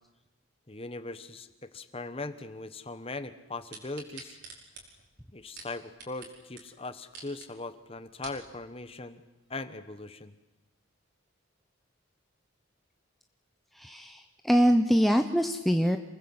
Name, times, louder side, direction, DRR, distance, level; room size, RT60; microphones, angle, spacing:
voice 1, 0.7-4.4 5.3-9.2 9.5-10.3, left 2 dB, 25° left, 11 dB, 1.3 m, -40 dB
sound 1, 3.7-6.3 6.6-6.7 7.0-7.5 8.0-8.4 9.0-9.1, right 4 dB, 50° right, 5.4 m, -46 dB
voice 2, 13.8-16.0, equal, ahead, 5 dB, 0.8 m, -24 dB
27.5 x 20.5 x 7.9 m, 1.0 s
head